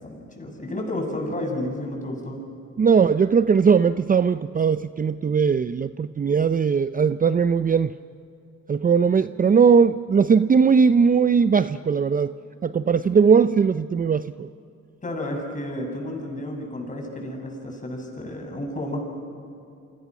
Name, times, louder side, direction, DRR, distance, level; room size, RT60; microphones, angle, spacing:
voice 1, 0.0-2.4 15.0-19.0, left 1 dB, 25° left, 2 dB, 6.9 m, -31 dB
voice 2, 2.8-7.9 8.7-12.3 12.6-14.5, right 6 dB, 30° right, 13 dB, 0.6 m, -19 dB
29.5 x 24.5 x 6.2 m, 2.7 s
cardioid pair, 90°, 30 cm